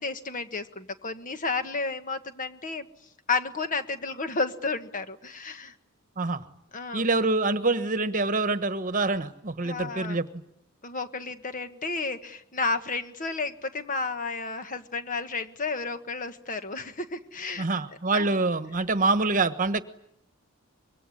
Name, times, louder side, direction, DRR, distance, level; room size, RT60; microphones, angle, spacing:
voice 1, 0.0-2.9 3.3-5.7 6.7-7.0 9.6-10.2 10.8-17.7 18.1-18.4, left 3 dB, 40° left, 9 dB, 1.6 m, -32 dB
voice 2, 6.9-10.4 17.6-19.8, right 3 dB, 40° right, 11 dB, 1.3 m, -26 dB
25.5 x 23.0 x 9.9 m, 0.78 s
head